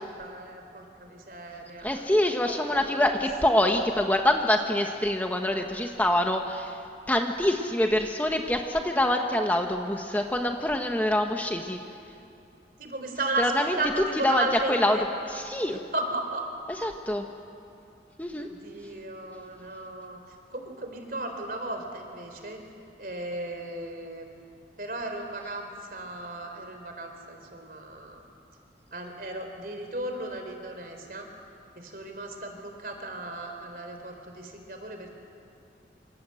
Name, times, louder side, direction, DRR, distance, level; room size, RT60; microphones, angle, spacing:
voice 1, 0.0-2.3 2.7-3.1 12.8-13.5 13.8-15.0 15.9-16.4 18.4-20.2 20.5-22.6 23.0-24.3 24.8-28.2 28.9-31.3 31.8-35.1, right 2 dB, 55° right, 4 dB, 4.0 m, -35 dB
voice 2, 1.8-6.8 7.1-11.8 13.4-13.8 14.2-15.0 15.3-15.8 16.7-17.2 18.2-18.5, left 1 dB, 10° left, 3 dB, 1.2 m, -25 dB
27.5 x 27.0 x 7.8 m, 2.6 s
head